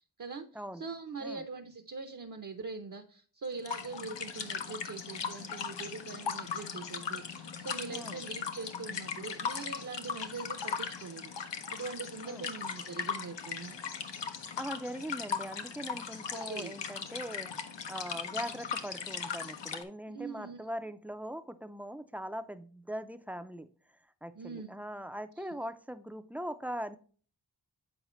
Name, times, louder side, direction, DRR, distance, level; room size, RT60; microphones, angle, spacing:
voice 1, 0.0-13.8 16.3-16.8 20.1-20.7 24.3-24.7 25.4-25.5, right 4 dB, 50° right, 4 dB, 0.6 m, -43 dB
sound 1, 3.6-19.8, left 6 dB, 90° left, 0.8 m, -38 dB
voice 2, 14.6-17.5 17.9-23.7 24.2-27.0, equal, 5° right, 10 dB, 0.4 m, -41 dB
7.9 x 4.7 x 3.0 m, 0.42 s
wide cardioid pair, 90°, 42 cm